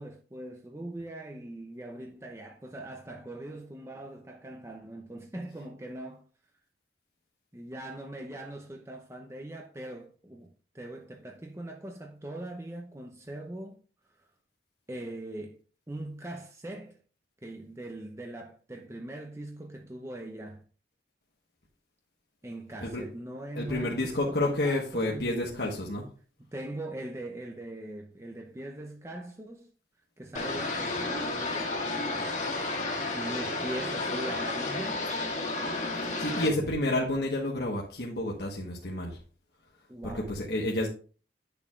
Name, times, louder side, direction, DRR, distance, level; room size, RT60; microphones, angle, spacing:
voice 1, 0.0-6.2 7.5-13.8 14.0-14.2 14.9-15.6 15.9-17.0 17.4-20.6 22.4-25.8 26.4-29.7 30.2-32.4 33.1-35.0 36.3-36.8 39.9-40.3, right 1 dB, 15° right, 0.7 m, -41 dB
voice 2, 23.6-26.1 36.0-39.2 40.0-40.9, left 1 dB, 65° left, 1.3 m, -30 dB
sound 1, 30.3-36.5, left 2 dB, 45° left, 1.8 m, -32 dB
10.5 x 6.9 x 2.5 m
head